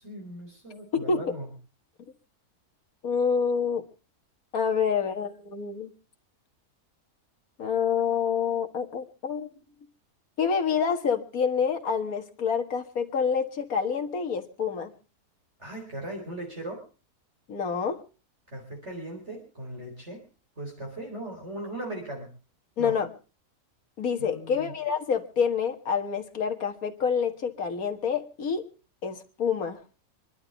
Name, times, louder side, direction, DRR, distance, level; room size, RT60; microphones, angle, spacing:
voice 1, 0.0-1.5 15.6-16.8 18.5-20.2 20.6-22.3 22.8-23.0 24.2-24.7, right 1 dB, 45° right, -1 dB, 4.3 m, -38 dB
voice 2, 0.9-1.3 3.0-3.8 4.5-5.9 7.6-9.5 10.4-14.9 17.5-18.0 22.8-23.1 24.0-28.7 29.0-29.8, left 6 dB, 65° left, 5 dB, 2.0 m, -27 dB
26.0 x 11.5 x 3.9 m, 0.35 s
omnidirectional pair, 1.6 m